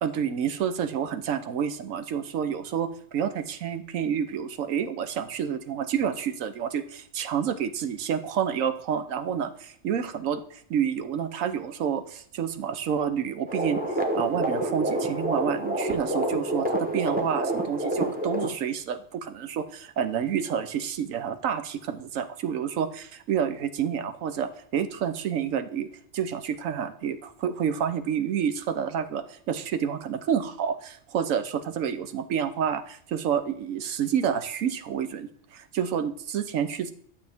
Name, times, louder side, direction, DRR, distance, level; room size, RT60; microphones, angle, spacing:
voice 1, 0.0-9.5 9.8-25.9 26.1-36.9, right 8 dB, 85° right, 10 dB, 1.1 m, -29 dB
sound 1, 13.5-18.5, right 1 dB, 10° right, 0.7 m, -28 dB
11.5 x 7.1 x 3.5 m, 0.62 s
omnidirectional pair, 1.3 m